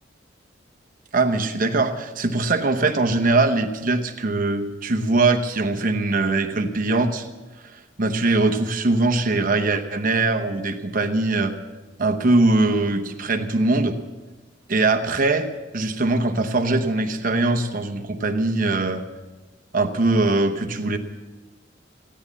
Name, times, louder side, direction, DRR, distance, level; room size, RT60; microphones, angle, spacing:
voice 1, 1.1-7.3 7.7-11.5 12.0-13.9 14.7-15.5 15.7-19.0 19.7-21.0, right 2 dB, 50° right, 6 dB, 1.0 m, -21 dB
15.5 x 10.5 x 7.1 m, 1.2 s
head